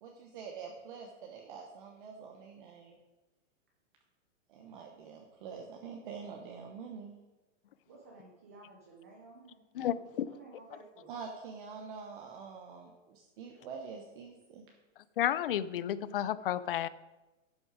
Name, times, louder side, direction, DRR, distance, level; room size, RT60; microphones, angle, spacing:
voice 1, 0.0-3.0 4.5-7.1 11.1-14.7, right 5 dB, 40° right, 2 dB, 1.1 m, -46 dB
voice 2, 7.9-11.2, right 3 dB, 15° right, -2 dB, 0.4 m, -55 dB
voice 3, 15.2-16.9, left 11 dB, 50° left, 16 dB, 0.4 m, -31 dB
12.0 x 6.0 x 4.9 m, 1.1 s
hypercardioid pair, 170°, 37 cm